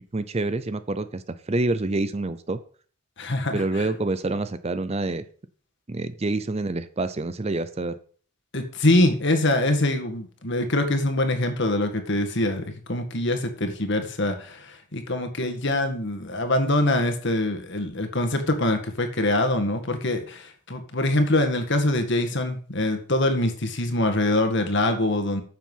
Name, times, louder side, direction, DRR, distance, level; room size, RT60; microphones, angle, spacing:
voice 1, 0.1-2.6 3.5-5.2 5.9-8.0, right 2 dB, 30° right, 13 dB, 0.6 m, -27 dB
voice 2, 3.2-3.9 8.5-25.4, left 1 dB, 55° left, 6 dB, 1.9 m, -24 dB
9.7 x 7.5 x 5.6 m, 0.43 s
head